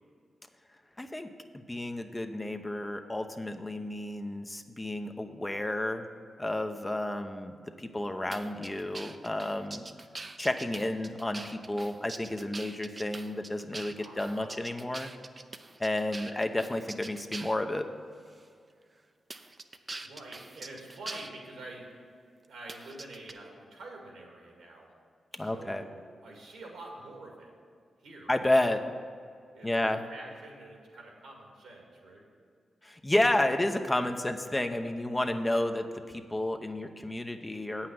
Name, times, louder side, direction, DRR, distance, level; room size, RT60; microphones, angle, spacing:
voice 1, 1.0-6.1 6.4-9.8 10.4-15.1 15.8-17.9 25.4-25.8 28.3-28.8 29.6-30.0 32.8-37.9, left 1 dB, 20° left, 6 dB, 0.8 m, -31 dB
sound 1, 8.3-17.6 18.3-18.4 19.3-21.3 22.7-23.3, right 3 dB, 40° right, 0.6 m, -43 dB
voice 2, 14.0-14.6 16.0-16.5 19.7-21.9 22.5-24.9 25.3-27.5 28.0-28.3 29.5-32.3, right 2 dB, 85° right, 0 dB, 2.0 m, -47 dB
8.4 x 5.7 x 7.8 m, 2.2 s
supercardioid pair, 45°, 0 cm